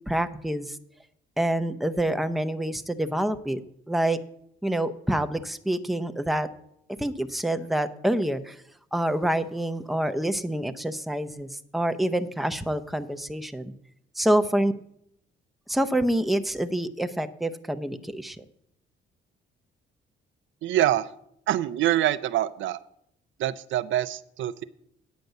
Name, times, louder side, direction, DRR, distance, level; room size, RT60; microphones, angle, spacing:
voice 1, 0.1-0.8 1.4-3.6 3.9-4.2 4.6-6.5 7.0-8.6 8.9-13.7 14.2-14.7 15.7-18.4, right 1 dB, ahead, 9 dB, 0.6 m, -27 dB
voice 2, 20.6-21.1 21.5-22.8 23.4-24.6, right 12 dB, 75° right, 13 dB, 0.5 m, -25 dB
9.4 x 5.3 x 7.9 m, 0.73 s
cardioid pair, 90°, 20 cm